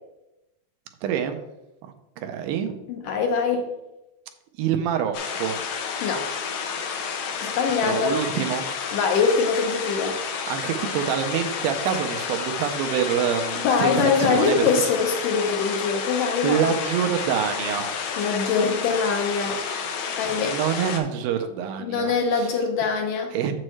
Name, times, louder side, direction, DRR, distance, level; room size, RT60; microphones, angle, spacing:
voice 1, 1.0-1.4 2.2-2.7 4.6-5.6 7.8-8.7 10.5-14.7 16.4-18.1 20.4-22.5 23.3-23.5, right 8 dB, 80° right, 6 dB, 2.3 m, -26 dB
voice 2, 2.9-3.7 6.0-6.3 7.4-8.2 8.9-10.2 13.6-16.7 18.2-19.6 20.2-20.6 21.8-23.3, left 5 dB, 70° left, 3 dB, 2.2 m, -23 dB
sound 1, 5.1-21.0, left 6 dB, 90° left, 1.5 m, -30 dB
7.6 x 7.4 x 3.1 m, 0.91 s
omnidirectional pair, 4.3 m